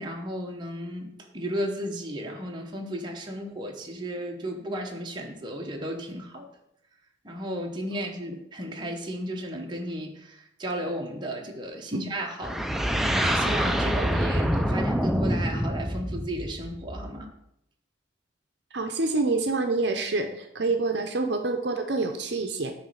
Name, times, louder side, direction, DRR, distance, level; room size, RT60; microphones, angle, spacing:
voice 1, 0.0-6.5 7.2-12.6 13.1-17.3, equal, 25° right, 0 dB, 0.9 m, -34 dB
sound 1, 12.4-17.3, equal, ahead, 0.3 m, -26 dB
voice 2, 18.7-22.7, right 3 dB, 60° right, 5 dB, 0.6 m, -27 dB
9.1 x 3.2 x 6.5 m, 0.78 s
head